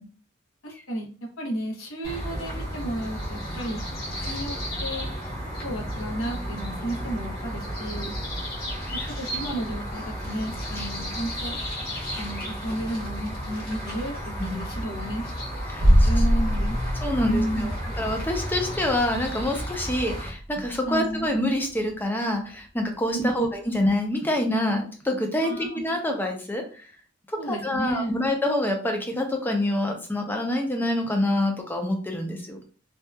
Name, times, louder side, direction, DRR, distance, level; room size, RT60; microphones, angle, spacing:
voice 1, 0.6-1.1 1.4-3.8 4.2-4.5 4.8-5.1 5.6-8.1 8.9-11.6 12.2-15.2 16.0-16.8 17.2-17.7 20.8-21.3 23.1-23.7 25.4-25.8 27.4-28.2, right 1 dB, 90° left, 0 dB, 0.8 m, -32 dB
sound 1, 2.0-20.3, equal, 50° left, 1.0 m, -33 dB
voice 2, 15.7-16.1 17.0-26.9 27.3-32.6, left 1 dB, 10° left, 3 dB, 0.5 m, -27 dB
sound 2, 15.8-21.5 21.8-21.9, equal, 60° right, 0.7 m, -25 dB
2.7 x 2.3 x 2.2 m, 0.39 s
head